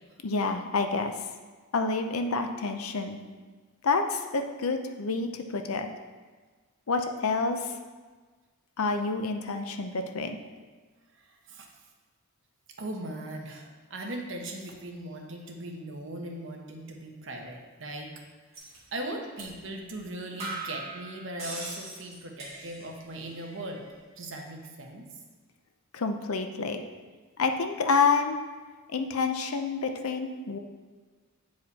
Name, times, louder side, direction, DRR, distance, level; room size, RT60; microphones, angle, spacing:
voice 1, 0.2-1.1 1.7-3.2 3.8-5.9 6.9-7.7 8.8-10.4 25.9-26.8 27.4-28.4 28.9-30.6, left 4 dB, 85° left, 6 dB, 0.6 m, -28 dB
voice 2, 11.2-11.7 12.8-18.1 18.9-23.8 24.2-25.1, right 1 dB, 60° right, 1 dB, 1.0 m, -39 dB
sound 1, 18.5-18.8 19.4-19.6 19.9-20.0 20.4-23.0 23.3-23.9, right 3 dB, 30° right, 2.0 m, -40 dB
8.4 x 4.9 x 4.1 m, 1.4 s
head